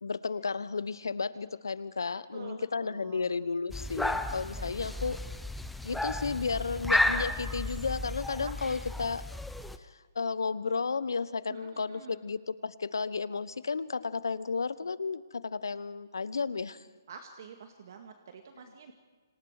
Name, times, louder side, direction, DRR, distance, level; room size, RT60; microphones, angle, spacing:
voice 1, 0.0-5.2 5.8-9.2 10.1-16.8, left 4 dB, 75° left, 16 dB, 1.1 m, -33 dB
voice 2, 2.3-3.3 4.5-5.2 8.4-8.8 11.5-12.2 17.1-18.9, right 6 dB, 50° right, 5 dB, 2.1 m, -48 dB
sound 1, 3.7-9.8, left 1 dB, ahead, 0.9 m, -33 dB
29.5 x 26.5 x 5.0 m, 1.4 s
figure-of-eight pair, 140°, 2 cm